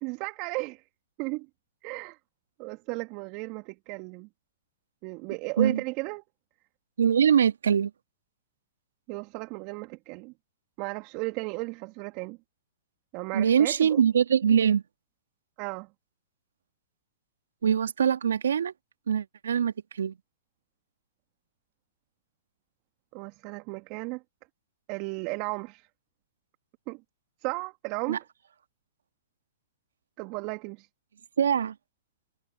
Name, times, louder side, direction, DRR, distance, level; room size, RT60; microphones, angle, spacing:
voice 1, 0.0-0.8 1.2-1.5 1.8-2.2 2.6-4.3 5.0-6.2 9.1-10.3 10.8-12.4 13.1-14.0 15.6-15.9 23.1-24.2 24.9-25.9 26.9-27.0 27.4-28.2 30.2-30.9, right 27 dB, 40° right, 2.1 m, -34 dB
voice 2, 7.0-7.9 13.3-14.8 17.6-18.7 19.1-20.1 28.1-28.2 31.4-31.7, right 8 dB, 75° right, 1.6 m, -23 dB
hypercardioid pair, 110°, 0 cm